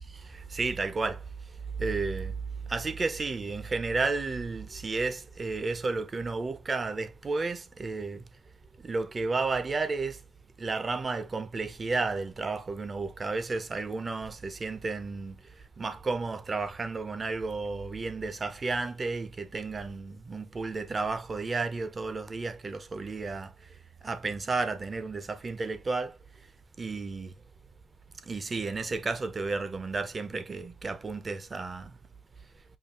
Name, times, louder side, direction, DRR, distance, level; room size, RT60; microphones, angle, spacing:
voice 1, 0.1-1.2 1.8-2.3 2.7-8.2 8.8-10.2 10.6-15.4 15.8-23.5 24.0-26.2 26.8-27.3 28.3-31.9, right 3 dB, 30° right, 0.6 m, -32 dB
5.6 x 2.4 x 2.4 m
cardioid pair, 90°, 0 cm